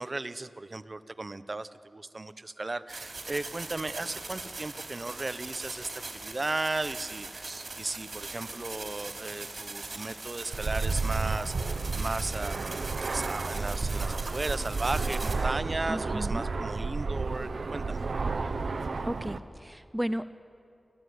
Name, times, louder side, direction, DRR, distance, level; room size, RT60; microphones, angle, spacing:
voice 1, 0.0-18.0, right 2 dB, 40° right, 12 dB, 0.9 m, -36 dB
sound 1, 2.9-15.4, right 3 dB, 60° right, 3.8 m, -41 dB
Fixed-wing aircraft airplane, 10.5-19.4, right 4 dB, 75° right, 1.0 m, -31 dB
voice 2, 15.9-16.5 19.0-20.3, equal, 10° right, 13 dB, 0.6 m, -34 dB
28.0 x 15.5 x 9.5 m, 2.6 s
wide cardioid pair, 75°, 0 cm